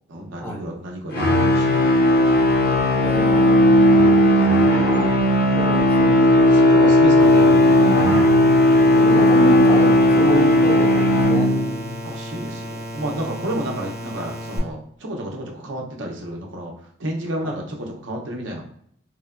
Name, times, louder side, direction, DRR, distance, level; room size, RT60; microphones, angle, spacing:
voice 1, 0.1-2.6 3.9-4.3 5.4-5.8 6.5-8.2 12.0-16.7 17.0-18.6, right 1 dB, 75° right, 0 dB, 0.6 m, -31 dB
sound 1, 1.1-11.9, left 1 dB, 50° left, 0.6 m, -15 dB
voice 2, 3.0-4.3 5.5-6.6 8.9-11.5 17.4-17.5, right 1 dB, 10° left, -3 dB, 0.5 m, -28 dB
sound 2, 7.2-14.6, equal, 35° right, 0.7 m, -34 dB
3.1 x 2.1 x 2.4 m, 0.68 s
head